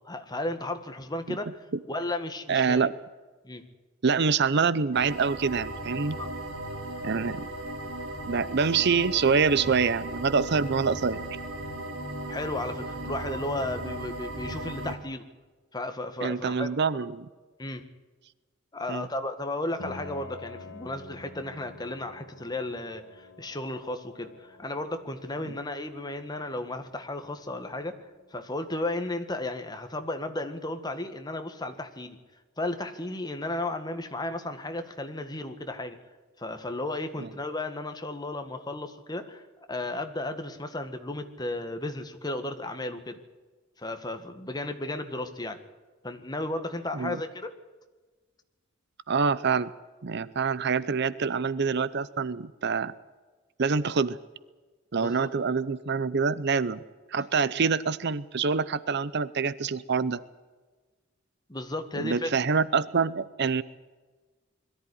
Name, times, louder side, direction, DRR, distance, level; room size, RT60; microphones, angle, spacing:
voice 1, 0.1-1.5 1.9-2.9 3.4-3.6 6.2-6.3 12.3-15.3 15.7-16.8 17.6-17.9 18.7-32.2 32.6-36.0 36.4-39.4 39.7-43.2 43.8-45.6 46.0-47.5 55.0-55.3 61.5-62.4, left 2 dB, 20° left, 7 dB, 1.7 m, -34 dB
voice 2, 2.5-2.9 4.0-6.2 7.0-7.4 8.3-11.2 16.2-17.3 18.9-19.1 37.2-37.3 46.9-47.2 49.1-49.7 50.0-52.9 53.6-54.2 54.9-56.8 57.1-60.2 62.0-63.6, right 5 dB, 55° right, 17 dB, 0.6 m, -26 dB
sound 1, 4.9-15.0, right 1 dB, 90° right, 2.7 m, -36 dB
Piano, 19.8-29.4, left 3 dB, 60° left, 1.7 m, -49 dB
22.0 x 14.0 x 10.0 m, 1.3 s
head